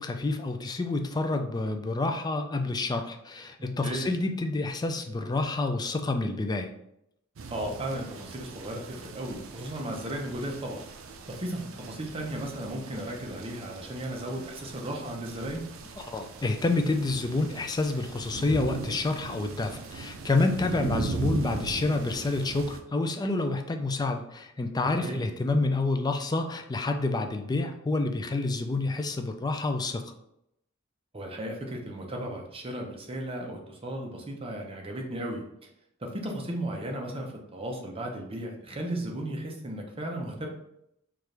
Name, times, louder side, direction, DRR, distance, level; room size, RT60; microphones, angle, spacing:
voice 1, 0.0-6.7 16.0-30.1, left 2 dB, 20° left, 6 dB, 0.4 m, -28 dB
voice 2, 3.6-4.1 7.5-10.8 11.3-15.7 20.6-21.0 25.0-25.3 31.1-35.7 36.0-40.5, right 1 dB, 30° right, 1 dB, 0.7 m, -35 dB
sound 1, 7.4-22.8, right 3 dB, 80° right, 0.4 m, -39 dB
4.5 x 2.5 x 3.3 m, 0.78 s
head